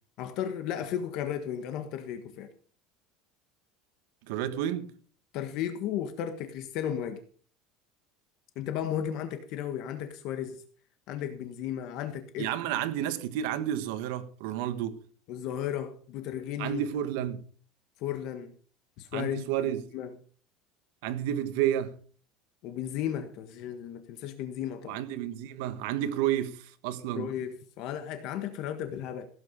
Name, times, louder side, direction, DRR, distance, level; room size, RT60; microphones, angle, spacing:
voice 1, 0.2-2.5 5.3-7.2 8.5-10.6 11.1-12.5 15.3-16.8 18.0-18.5 19.0-20.1 22.6-25.0 27.1-29.3, left 10 dB, 50° left, 1.4 m, -34 dB
voice 2, 4.3-4.9 12.4-15.0 16.6-17.4 19.1-19.8 21.0-21.9 24.9-27.3, right 11 dB, 70° right, 1.5 m, -31 dB
16.5 x 8.8 x 5.3 m
cardioid pair, 170°, 0 cm